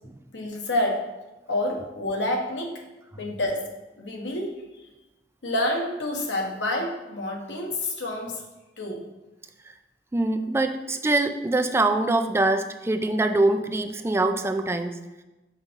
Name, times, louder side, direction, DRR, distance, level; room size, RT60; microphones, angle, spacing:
voice 1, 0.3-1.1 1.5-2.9 3.2-3.6 4.0-4.6 5.4-8.4 8.8-9.1, left 1 dB, 85° left, 1 dB, 1.1 m, -28 dB
voice 2, 10.1-15.0, right 2 dB, 15° right, 6 dB, 0.3 m, -24 dB
5.6 x 3.5 x 5.2 m, 1.1 s
head